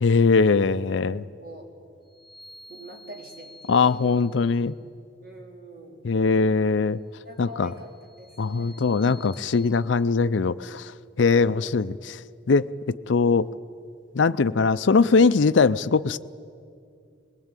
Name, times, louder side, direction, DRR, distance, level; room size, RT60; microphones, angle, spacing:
voice 1, 0.0-1.2 3.7-4.7 6.0-7.0 7.4-7.7 8.4-10.9 11.2-12.2 12.5-13.5 14.1-16.2, left 4 dB, 70° left, 13 dB, 0.5 m, -21 dB
voice 2, 1.4-1.7 2.7-4.1 5.2-6.0 7.2-7.9 8.2-8.9 11.3-11.8, equal, 50° right, 0 dB, 4.1 m, -44 dB
sound 1, 2.1-4.6 7.6-9.7, left 2 dB, 25° right, 3.4 m, -50 dB
24.0 x 20.5 x 9.0 m, 2.4 s
head